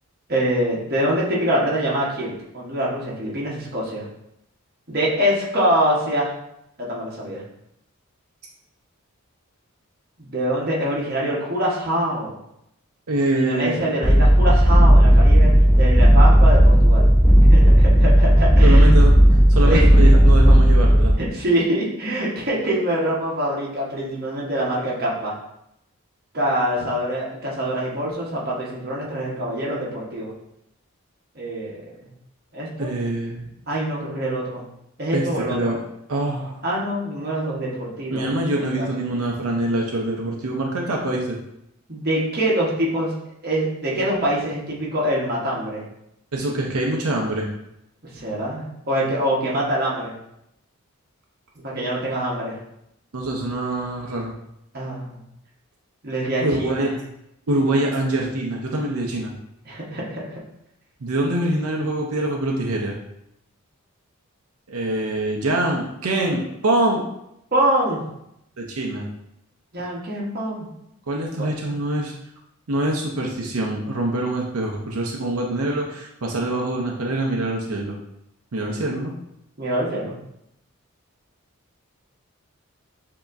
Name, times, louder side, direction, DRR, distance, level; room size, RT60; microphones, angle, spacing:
voice 1, 0.3-4.0 4.9-6.3 6.8-7.4 10.2-12.4 13.3-15.5 15.8-17.1 17.5-18.9 19.6-19.9 21.2-25.3 26.3-30.3 31.3-31.7 32.0-32.1 32.5-32.9 33.7-34.6 35.0-35.7 36.6-38.3 38.5-38.9 41.9-43.1 43.4-45.8 48.1-50.1 51.5-52.6 54.7-55.2 56.0-56.9 59.7-60.4 67.5-68.0 69.7-70.7 71.4-71.5 79.6-80.1, right 1 dB, 45° right, -5 dB, 1.1 m, -24 dB
voice 2, 13.1-13.8 18.6-19.1 19.5-21.1 32.8-33.5 35.1-35.8 36.1-36.6 38.1-41.4 46.3-47.5 53.1-54.3 56.4-56.9 57.5-59.3 61.0-62.9 64.7-67.0 68.6-69.1 71.1-72.1 72.7-78.0 78.5-79.1, right 1 dB, 85° right, -1 dB, 0.7 m, -24 dB
sound 1, 14.0-21.1, equal, 10° left, 0.6 m, -13 dB
7.0 x 2.8 x 2.5 m, 0.81 s
head